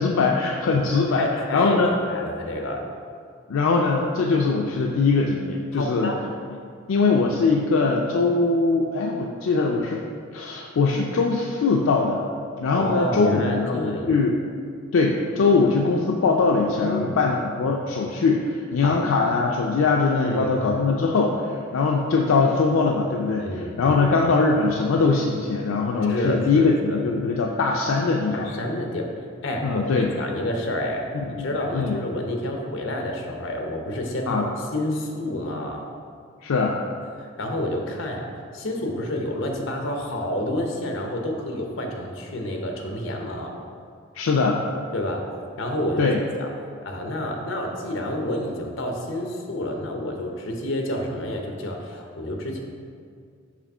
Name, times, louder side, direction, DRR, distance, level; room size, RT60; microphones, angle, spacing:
voice 1, 0.0-1.3 1.5-1.9 3.5-6.1 6.9-10.0 10.3-12.2 12.6-14.4 14.9-21.4 21.7-28.5 29.6-30.1 31.1-31.5 31.7-32.0 34.3-34.5 36.4-36.8 44.1-44.6 46.0-46.2, left 4 dB, 90° left, 0 dB, 0.4 m, -21 dB
voice 2, 1.2-1.8 2.1-2.8 5.7-6.2 12.7-14.2 16.8-17.2 18.8-19.0 20.1-20.8 23.4-24.0 26.0-27.0 28.3-31.0 31.4-35.9 37.2-43.6 44.9-45.3 45.6-46.1 46.4-46.5 46.8-52.6, left 1 dB, 70° left, 2 dB, 0.8 m, -29 dB
5.0 x 3.5 x 5.4 m, 2.2 s
head